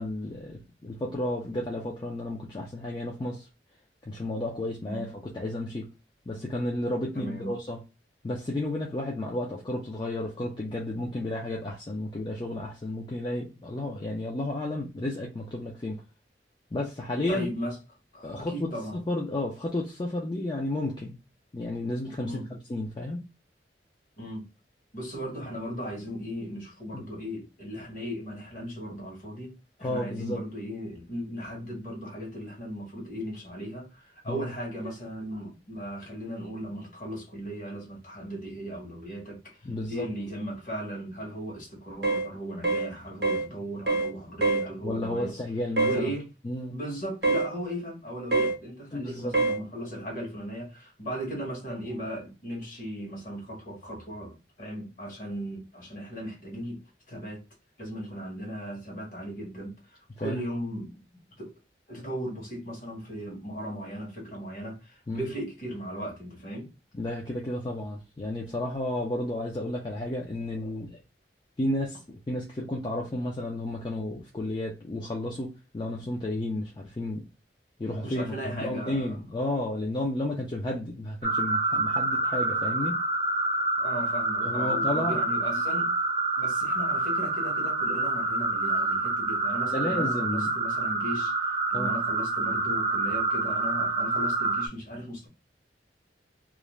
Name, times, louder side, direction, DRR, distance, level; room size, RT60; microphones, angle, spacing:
voice 1, 0.0-3.5 4.1-5.9 6.3-7.8 8.2-16.0 16.7-17.5 18.2-18.7 19.1-21.2 21.5-23.2 26.9-27.1 29.8-30.4 34.3-34.5 39.6-40.1 44.8-46.1 46.4-46.8 48.9-49.4 60.2-60.4 65.1-65.3 66.9-71.0 71.6-77.3 77.8-83.0 84.4-85.2 89.7-90.5 91.7-91.9, left 1 dB, 25° left, 0.4 m, -32 dB
voice 2, 7.1-7.5 17.3-17.8 18.1-19.0 22.2-22.5 24.2-24.5 24.9-45.4 45.8-46.3 46.7-56.8 57.1-57.4 57.8-61.0 61.4-61.5 61.9-66.7 78.0-79.2 83.8-85.9 86.4-91.3 91.7-95.3, equal, 45° left, 1.1 m, -37 dB
sound 1, 42.0-42.3 42.6-42.9 43.2-43.5 43.9-44.1 44.4-44.7 45.8-46.0 47.2-47.5 48.3-48.6 49.3-49.6, right 3 dB, 60° right, 0.7 m, -24 dB
sound 2, 81.2-94.7, right 2 dB, 30° right, 0.5 m, -27 dB
2.4 x 2.0 x 3.0 m
head